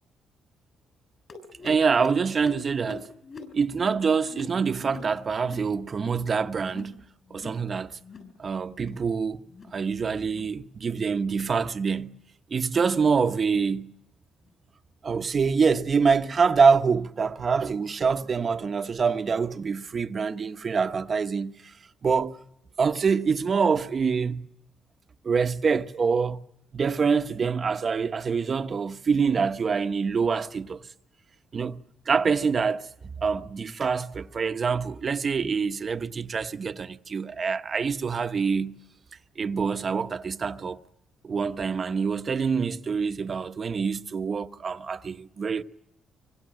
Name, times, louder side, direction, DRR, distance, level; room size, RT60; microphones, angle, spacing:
sound 1, 1.3-6.3 6.6-7.0 7.3-7.7 8.0-8.3 8.7-9.1 9.5-9.8 10.2-10.5 11.0-11.3 11.9-12.1 12.7-12.9 13.6-13.7 14.5-14.6, left 4 dB, 50° left, 7.9 m, -44 dB
voice 1, 1.6-3.1 3.5-7.0 7.3-8.0 8.4-9.4 9.7-12.1 12.5-13.9 15.0-21.7 22.0-22.4 22.8-24.4 25.2-26.4 26.7-30.9 31.5-31.8 32.1-38.8 39.4-40.8 41.2-45.6, right 5 dB, 40° right, 1.1 m, -25 dB
25.0 x 24.5 x 7.7 m
cardioid pair, 90°, 0 cm